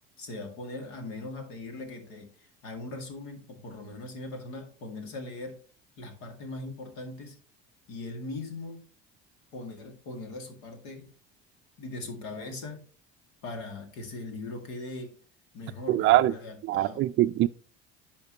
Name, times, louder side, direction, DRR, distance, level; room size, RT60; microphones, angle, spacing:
voice 1, 0.2-5.6 6.0-7.4 7.9-8.8 9.5-11.1 11.8-12.9 13.4-15.2 15.5-17.1, left 2 dB, 75° left, 2.2 m, -40 dB
voice 2, 15.9-16.3 16.7-17.5, right 15 dB, 45° right, 0.4 m, -22 dB
10.5 x 4.5 x 2.9 m
hypercardioid pair, 75°, 29 cm